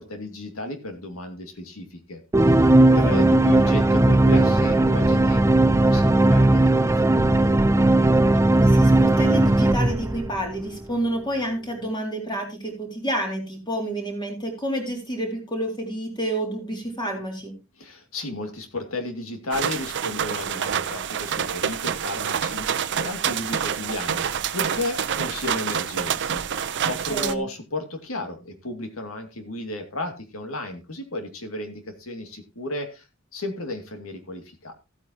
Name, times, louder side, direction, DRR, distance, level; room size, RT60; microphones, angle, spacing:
voice 1, 0.0-2.2 2.5-7.5 17.8-33.1 33.3-34.7, left 1 dB, 80° left, 6 dB, 2.4 m, -34 dB
sound 1, 2.3-10.8, right 2 dB, 15° right, 0.5 m, -17 dB
voice 2, 3.0-3.3 8.6-17.5 27.1-27.4, right 1 dB, 20° left, 1 dB, 3.7 m, -29 dB
sound 2, 19.5-27.3, right 8 dB, 60° right, 0.6 m, -27 dB
15.0 x 8.8 x 2.9 m, 0.28 s
head